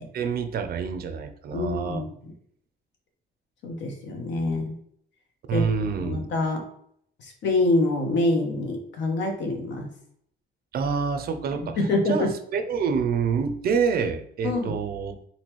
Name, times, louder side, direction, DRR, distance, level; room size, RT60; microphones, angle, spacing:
voice 1, 0.1-2.1 5.5-6.2 10.7-11.8 12.1-15.3, right 6 dB, 50° right, 8 dB, 0.5 m, -27 dB
voice 2, 1.5-2.1 3.6-4.8 5.5-5.6 6.0-6.6 7.4-9.9 11.8-12.3 14.4-14.7, left 2 dB, 70° left, 3 dB, 1.2 m, -25 dB
4.1 x 4.0 x 3.0 m, 0.67 s
cardioid pair, 165°, 19 cm